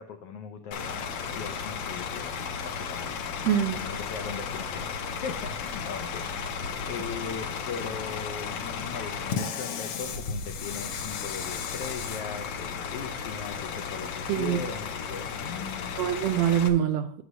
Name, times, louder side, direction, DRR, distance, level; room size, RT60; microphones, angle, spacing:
voice 1, 0.0-2.3 2.6-16.0, left 6 dB, 85° left, 7 dB, 1.3 m, -39 dB
Bus / Idling, 0.7-16.7, left 6 dB, 70° left, 1.5 m, -34 dB
voice 2, 3.4-3.8 14.3-14.6 16.0-17.2, right 10 dB, 80° right, 8 dB, 1.6 m, -24 dB
11.0 x 7.8 x 2.6 m, 0.65 s
omnidirectional pair, 3.5 m